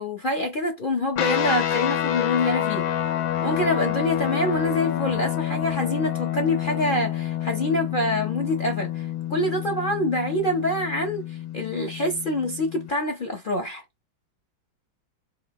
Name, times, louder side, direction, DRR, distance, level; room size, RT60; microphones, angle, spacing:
voice 1, 0.0-2.9 3.4-13.8, left 1 dB, 50° left, 0.6 m, -26 dB
sound 1, 1.2-12.9, left 11 dB, 85° left, 1.6 m, -28 dB
3.4 x 3.1 x 3.4 m
omnidirectional pair, 2.1 m